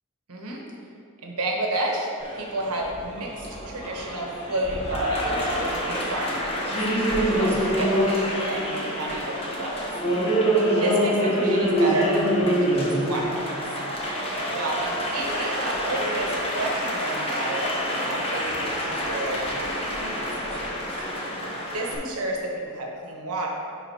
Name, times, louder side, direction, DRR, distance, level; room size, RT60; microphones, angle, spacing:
voice 1, 0.3-0.6 1.2-6.8 7.3-9.8 10.2-10.4 10.7-13.6 14.5-20.6 21.7-23.5, right 1 dB, 85° right, -1 dB, 1.1 m, -31 dB
Applause, 2.2-22.0, equal, 25° left, 1.0 m, -26 dB
10.0 x 3.9 x 2.9 m, 2.5 s
head